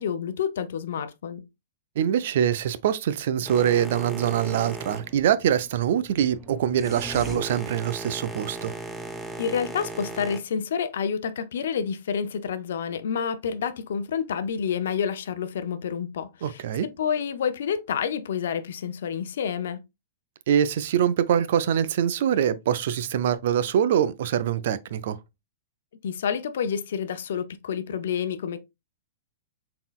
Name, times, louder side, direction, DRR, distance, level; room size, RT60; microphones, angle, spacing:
voice 1, 0.0-1.5 9.4-19.8 26.0-28.6, left 7 dB, 75° left, 0.5 m, -29 dB
voice 2, 2.0-8.7 16.4-16.9 20.5-25.2, right 9 dB, 65° right, 0.4 m, -24 dB
Boat Water vehicle, 3.5-10.4, right 2 dB, 5° right, 0.5 m, -37 dB
4.0 x 3.7 x 2.3 m
hypercardioid pair, 140°, 0 cm